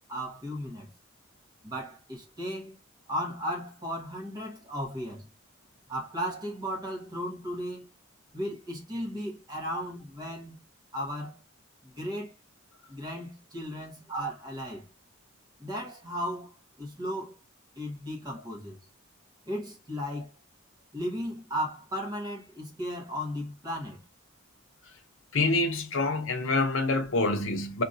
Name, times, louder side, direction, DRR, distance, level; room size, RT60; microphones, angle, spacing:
voice 1, 0.1-0.9 1.6-2.8 3.1-5.3 5.9-7.9 8.3-10.6 10.9-11.4 11.8-12.3 12.9-14.9 15.6-17.4 17.7-18.8 19.5-20.3 20.9-24.0, equal, 20° right, 1.1 m, -35 dB
voice 2, 25.3-27.8, left 2 dB, 65° left, 0.7 m, -26 dB
2.9 x 2.6 x 2.6 m
head